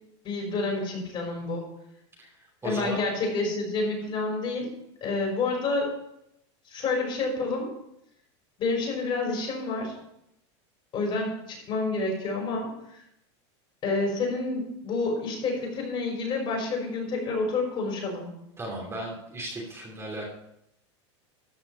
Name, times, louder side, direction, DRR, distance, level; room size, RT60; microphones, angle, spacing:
voice 1, 0.2-1.7 2.6-4.7 5.0-5.9 6.7-7.7 8.6-9.9 10.9-13.0 13.8-18.3, left 3 dB, 35° left, 0 dB, 5.4 m, -29 dB
voice 2, 2.2-3.0 18.6-20.3, right 1 dB, 15° right, -2 dB, 3.0 m, -36 dB
14.0 x 5.9 x 5.6 m, 0.79 s
supercardioid pair, 130°, 15 cm